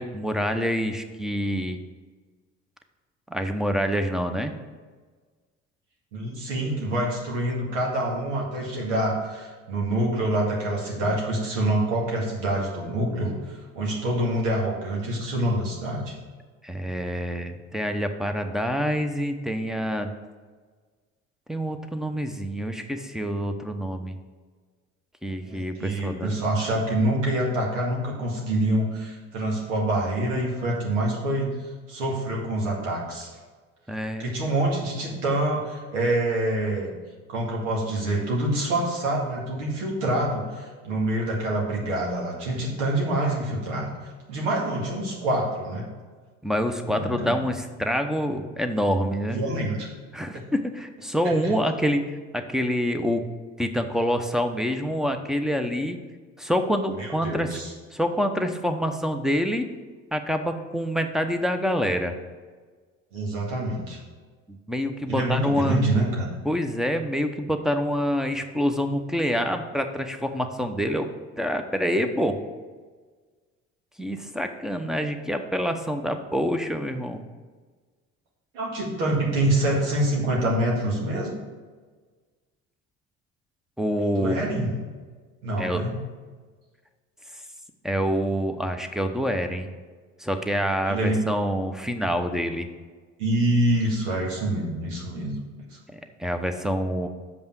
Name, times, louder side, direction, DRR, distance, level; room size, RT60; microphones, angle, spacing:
voice 1, 0.0-1.8 3.3-4.5 16.6-20.1 21.5-24.1 25.2-26.4 33.9-34.3 46.4-49.4 50.1-53.2 53.6-56.0 56.4-57.6 57.9-59.7 60.1-62.1 64.5-65.8 66.4-71.1 71.4-72.4 74.0-77.2 83.8-84.5 85.6-85.8 87.8-89.7 90.2-92.7 95.9-97.1, equal, ahead, 6 dB, 0.9 m, -26 dB
voice 2, 6.1-16.1 25.4-31.5 31.9-33.3 34.2-36.9 37.3-43.9 44.3-45.9 46.8-47.4 49.3-49.9 50.3-50.4 51.2-51.5 57.0-57.7 63.1-64.0 65.1-66.3 78.5-81.3 84.2-84.8 85.4-86.0 90.9-91.3 93.2-95.3 95.7-95.8, right 1 dB, 85° right, -2 dB, 2.0 m, -26 dB
6.8 x 5.4 x 6.1 m, 1.4 s
hypercardioid pair, 60°, 37 cm